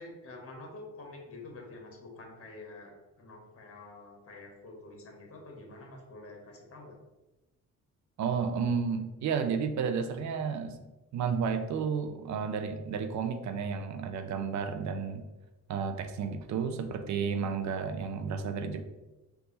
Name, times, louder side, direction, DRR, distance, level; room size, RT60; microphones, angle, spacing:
voice 1, 0.0-7.0, left 2 dB, 50° left, 1 dB, 1.4 m, -47 dB
voice 2, 8.2-10.8 11.1-15.3 15.7-18.8, right 6 dB, 70° right, 8 dB, 0.6 m, -32 dB
4.7 x 2.6 x 3.9 m, 1.1 s
cardioid pair, 90°, 30 cm